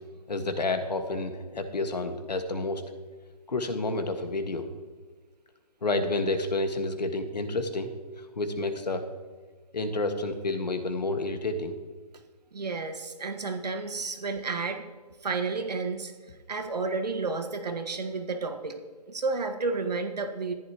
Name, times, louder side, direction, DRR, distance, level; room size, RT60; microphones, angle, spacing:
voice 1, 0.3-2.8 3.5-4.7 5.8-7.9 8.4-9.0 9.7-11.7, left 2 dB, 90° left, 7 dB, 1.7 m, -29 dB
voice 2, 12.5-14.8 15.2-16.1 16.5-18.8 19.1-20.5, right 4 dB, 80° right, 6 dB, 1.6 m, -31 dB
14.5 x 10.5 x 3.0 m, 1.4 s
hypercardioid pair, 165°, 21 cm